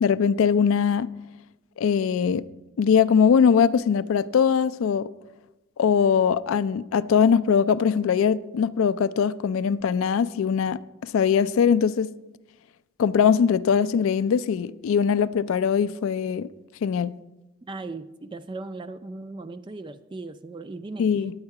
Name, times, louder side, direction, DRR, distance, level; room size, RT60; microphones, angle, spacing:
voice 1, 0.0-1.1 1.8-2.5 2.8-5.1 5.8-12.1 13.0-16.5 16.8-17.2 21.0-21.3, left 7 dB, 65° left, 0.3 m, -21 dB
voice 2, 17.6-21.0, right 3 dB, 20° right, 0.3 m, -37 dB
9.5 x 8.9 x 4.7 m
head